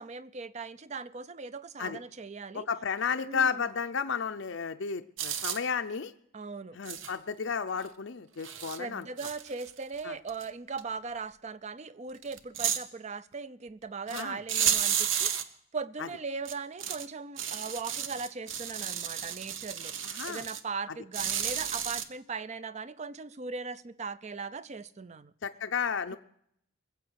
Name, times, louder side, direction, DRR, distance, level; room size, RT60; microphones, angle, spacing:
voice 1, 0.0-2.7 3.3-3.6 6.3-6.8 8.7-15.3 15.7-19.9 20.3-25.3, right 4 dB, 35° right, 0.5 m, -39 dB
voice 2, 2.5-6.1 6.7-9.1 10.0-10.2 14.1-14.4 16.0-16.1 20.0-20.5 25.4-26.2, left 6 dB, 60° left, 0.5 m, -32 dB
sound 1, 5.2-5.6 6.9-7.1 7.8-7.9 8.4-8.8 9.2-10.0 10.3-10.4 10.8-10.9 12.2-12.8 14.1-14.2 14.5-15.4 16.5-17.1 17.4-20.6 21.1-22.1, right 9 dB, 65° right, 0.9 m, -32 dB
20.5 x 7.8 x 6.4 m
head